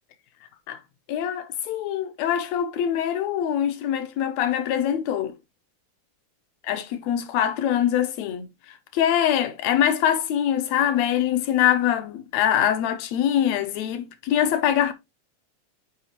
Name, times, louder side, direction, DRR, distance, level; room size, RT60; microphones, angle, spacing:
voice 1, 1.1-5.3 6.7-8.5 8.9-14.9, left 10 dB, 75° left, 1.7 m, -23 dB
7.2 x 5.0 x 2.9 m
omnidirectional pair, 3.6 m